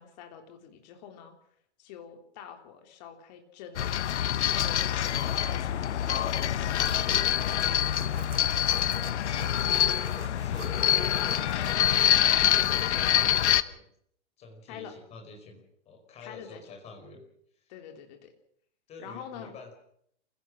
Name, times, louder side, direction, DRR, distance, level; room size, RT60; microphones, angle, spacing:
voice 1, 0.0-1.3 1.8-3.9 4.5-6.4 6.8-8.3 14.7-14.9 16.2-16.8 17.7-18.3 19.0-19.5, left 8 dB, 35° left, 5 dB, 3.4 m, -46 dB
sound 1, 3.8-13.6, left 10 dB, 70° left, 1.2 m, -25 dB
sound 2, 6.8-12.1, right 8 dB, 90° right, 2.1 m, -47 dB
voice 2, 9.4-13.9 14.4-17.2 18.9-19.7, left 3 dB, 15° left, 3 dB, 4.8 m, -48 dB
28.0 x 16.5 x 6.3 m, 0.68 s
hypercardioid pair, 165°, 36 cm